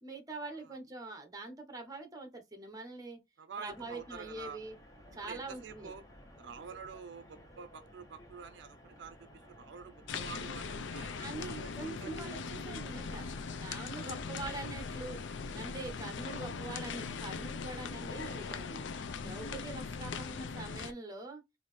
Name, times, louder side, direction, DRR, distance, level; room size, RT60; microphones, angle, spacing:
voice 1, 0.0-3.2 3.6-4.8 5.1-5.9 11.2-13.3 13.6-15.2 15.5-18.8 19.2-21.4, right 3 dB, 20° right, 1.0 m, -44 dB
voice 2, 3.4-4.6 5.2-6.0 6.4-11.1 11.6-12.5 13.9-14.4, right 5 dB, 75° right, 0.5 m, -48 dB
sound 1, 3.7-13.7, equal, 20° left, 1.1 m, -56 dB
sound 2, 10.1-20.9, left 5 dB, 85° left, 0.5 m, -40 dB
4.1 x 2.6 x 3.2 m
head